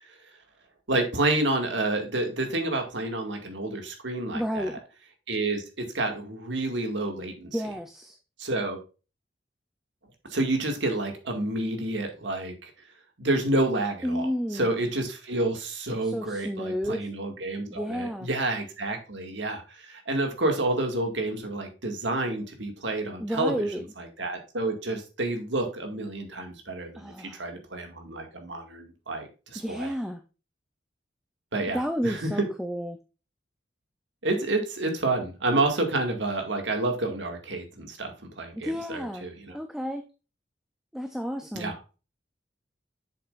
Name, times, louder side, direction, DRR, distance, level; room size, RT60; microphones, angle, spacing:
voice 1, 0.9-4.7 5.3-7.5 8.4-8.8 10.3-12.7 13.2-14.3 14.5-23.7 24.0-29.9 31.5-32.2 34.2-39.3 41.5-41.7, right 2 dB, 80° right, 4 dB, 2.1 m, -29 dB
voice 2, 4.3-4.8 7.5-8.2 14.0-14.7 16.0-17.1 17.7-18.3 23.2-23.8 26.9-27.5 29.5-30.2 31.7-33.0 38.6-40.0 40.9-41.8, equal, ahead, 7 dB, 0.5 m, -31 dB
7.7 x 7.1 x 2.5 m, 0.32 s
head